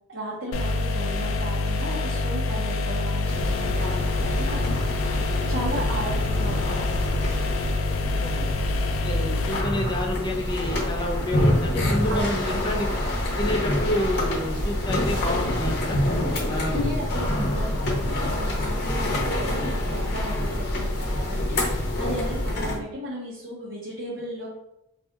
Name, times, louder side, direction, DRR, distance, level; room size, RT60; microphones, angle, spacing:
voice 1, 0.1-5.1 5.5-7.1 12.1-12.6 16.7-24.5, equal, 65° right, -9 dB, 1.1 m, -35 dB
sound 1, 0.5-9.6, left 2 dB, 90° left, 0.4 m, -26 dB
sound 2, 3.2-22.8, left 1 dB, 50° left, 0.7 m, -26 dB
voice 2, 8.9-12.9 13.4-16.0 16.5-17.0, left 1 dB, 20° left, 0 dB, 0.4 m, -29 dB
4.1 x 2.6 x 2.3 m, 0.84 s
head